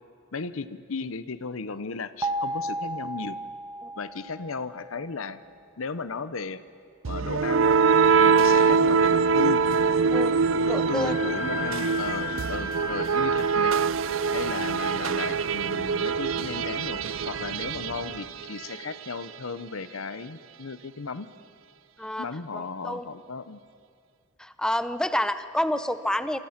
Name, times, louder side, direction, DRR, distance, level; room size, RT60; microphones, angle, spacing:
voice 1, 0.3-3.4 4.0-5.4 5.8-6.6 7.0-7.8 8.2-9.6 10.6-13.8 14.3-21.3 22.2-23.6, left 4 dB, 75° left, 14 dB, 0.8 m, -35 dB
sound 1, 2.2-5.2, right 1 dB, 15° right, 1.0 m, -34 dB
sound 2, 7.0-18.9, right 5 dB, 65° right, 0.5 m, -24 dB
voice 2, 10.7-11.1 22.0-22.3 22.5-23.1 24.4-26.4, left 1 dB, 5° left, 11 dB, 0.7 m, -28 dB
Wind instrument woodwind instrument, 10.8-18.2, left 4 dB, 35° left, 3.9 m, -39 dB
27.5 x 24.5 x 5.9 m, 2.3 s
head